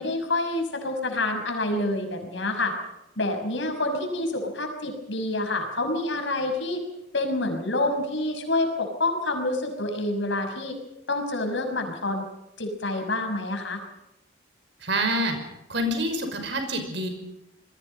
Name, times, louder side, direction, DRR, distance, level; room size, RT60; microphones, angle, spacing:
voice 1, 0.0-2.7 3.2-6.8 7.1-10.8 11.1-12.2 12.6-13.8, left 2 dB, 70° left, 5 dB, 6.0 m, -27 dB
voice 2, 14.8-15.4 15.7-17.1, right 1 dB, 65° right, 6 dB, 5.6 m, -26 dB
28.0 x 21.5 x 5.5 m, 0.90 s
head